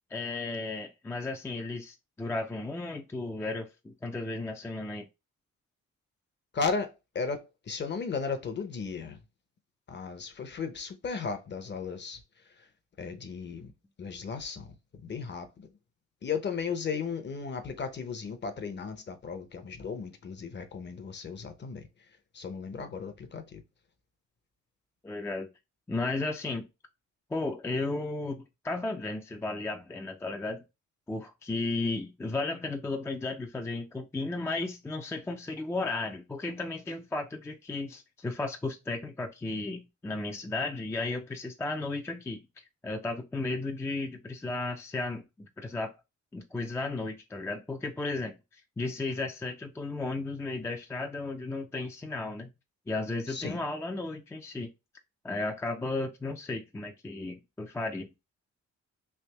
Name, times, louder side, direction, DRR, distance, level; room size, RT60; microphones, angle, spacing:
voice 1, 0.1-5.1 25.0-25.5 25.9-26.7 27.3-30.6 31.1-42.4 42.8-45.9 46.3-52.5 52.9-54.7 55.2-58.1, left 2 dB, 10° left, 0.4 m, -34 dB
voice 2, 6.5-9.2 9.9-12.2 13.0-13.7 14.0-14.7 15.0-15.7 16.2-21.9 22.3-23.6 53.3-53.6, left 5 dB, 35° left, 0.7 m, -35 dB
3.4 x 2.6 x 2.9 m
cardioid pair, 90°, 30 cm